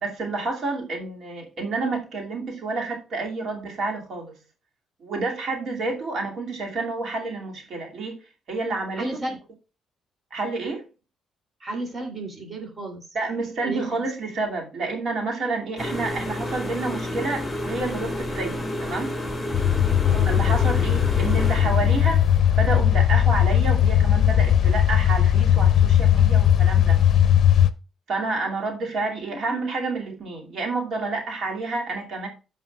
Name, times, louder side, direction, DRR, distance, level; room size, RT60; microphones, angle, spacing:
voice 1, 0.0-4.3 5.0-8.2 8.5-9.4 10.3-10.8 13.1-19.1 20.2-27.0 28.1-32.3, right 3 dB, 60° right, 2.5 m, -29 dB
voice 2, 9.0-9.4 11.6-13.1 13.6-13.9 20.0-20.3 21.0-21.2 29.4-29.5, right 2 dB, 35° right, 3.0 m, -33 dB
sound 1, 15.8-22.4, left 1 dB, 5° left, 3.2 m, -31 dB
sound 2, 19.5-27.7, left 10 dB, 55° left, 0.6 m, -18 dB
15.0 x 5.4 x 2.4 m
cardioid pair, 90°, 0 cm